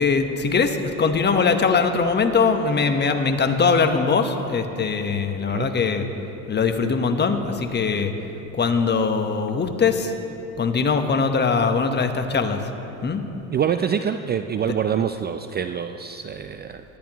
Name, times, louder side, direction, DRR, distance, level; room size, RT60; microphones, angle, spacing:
voice 1, 0.0-6.1 6.5-8.1 8.5-10.1 10.6-12.6 13.0-13.2, left 5 dB, 25° left, 6 dB, 1.2 m, -21 dB
voice 2, 13.5-16.8, right 8 dB, 25° right, 8 dB, 0.5 m, -25 dB
19.0 x 13.0 x 3.0 m, 3.0 s
hypercardioid pair, 80°, 39 cm